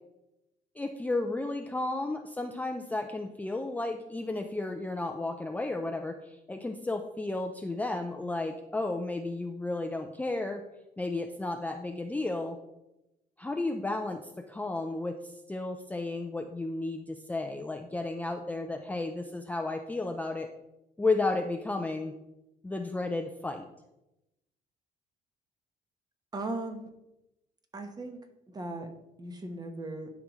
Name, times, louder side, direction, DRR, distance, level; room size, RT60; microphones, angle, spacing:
voice 1, 0.8-10.6 11.0-12.6 13.4-20.5 21.0-22.1 22.6-23.7, left 2 dB, 10° left, 4 dB, 0.5 m, -33 dB
voice 2, 26.3-26.9 27.7-28.2 28.5-28.9 29.2-30.1, right 2 dB, 25° right, 6 dB, 1.1 m, -37 dB
11.5 x 5.0 x 3.1 m, 0.93 s
cardioid pair, 110°, 17 cm